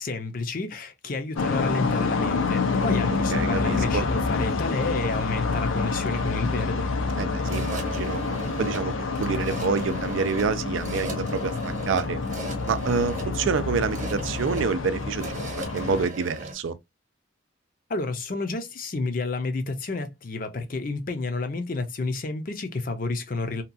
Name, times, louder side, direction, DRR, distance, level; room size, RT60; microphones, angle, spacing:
voice 1, 0.0-6.9 17.9-23.6, left 3 dB, 45° left, 0.6 m, -30 dB
sound 1, 1.4-16.1, left 4 dB, 85° left, 0.6 m, -27 dB
voice 2, 3.3-4.0 7.2-8.2 8.6-11.6 11.9-12.2 12.6-16.8, right 5 dB, 80° right, 0.4 m, -27 dB
sound 2, 5.2-16.5, right 2 dB, 40° right, 0.9 m, -39 dB
2.8 x 2.3 x 2.5 m
head